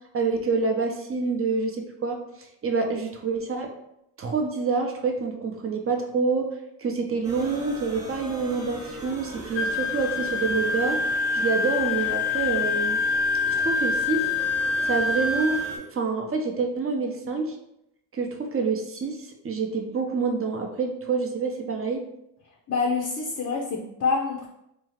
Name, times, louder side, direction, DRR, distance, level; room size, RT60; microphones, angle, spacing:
voice 1, 0.1-2.2 2.6-3.7 4.2-6.5 6.8-11.0 11.3-13.0 13.5-14.3 14.8-15.6 15.9-17.5 18.1-22.0, right 4 dB, 30° right, 3 dB, 0.6 m, -27 dB
sound 1, 7.2-15.8, right 1 dB, 5° right, 1.0 m, -40 dB
Wind instrument woodwind instrument, 9.5-15.8, left 4 dB, 85° left, 0.9 m, -26 dB
voice 2, 22.7-24.5, left 4 dB, 35° left, -1 dB, 0.6 m, -26 dB
2.8 x 2.3 x 3.1 m, 0.80 s
supercardioid pair, 70°, 48 cm